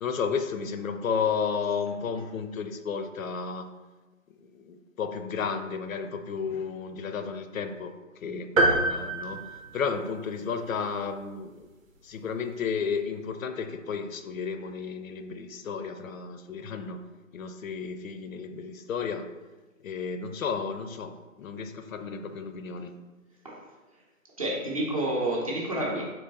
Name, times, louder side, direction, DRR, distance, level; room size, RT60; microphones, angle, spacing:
voice 1, 0.0-3.7 4.4-9.5 9.7-11.5 12.0-17.0 17.3-19.3 19.8-23.0, left 6 dB, 80° left, 8 dB, 0.6 m, -33 dB
sound 1, 8.6-10.4, right 2 dB, 80° right, 0.9 m, -26 dB
voice 2, 24.4-26.0, right 1 dB, 25° right, -4 dB, 0.7 m, -29 dB
3.8 x 3.0 x 4.0 m, 1.2 s
hypercardioid pair, 170°, 40 cm